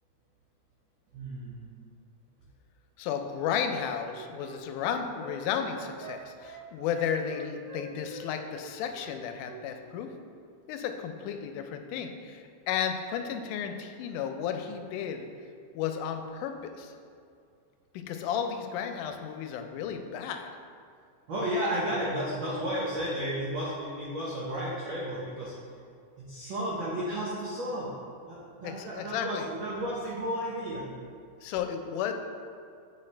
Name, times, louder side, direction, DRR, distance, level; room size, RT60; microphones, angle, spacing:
voice 1, 1.1-1.7 21.3-25.5 26.2-27.9 28.3-30.9, equal, 90° right, -7 dB, 1.0 m, -33 dB
voice 2, 3.0-10.1 10.7-15.3 15.8-16.9 17.9-20.5 28.6-29.5 31.4-32.1, left 8 dB, 90° left, 6 dB, 2.1 m, -33 dB
Wind instrument woodwind instrument, 4.0-8.3 8.5-9.6 9.8-10.0, right 3 dB, 65° right, 2.0 m, -46 dB
8.4 x 4.3 x 3.2 m, 2.3 s
omnidirectional pair, 3.5 m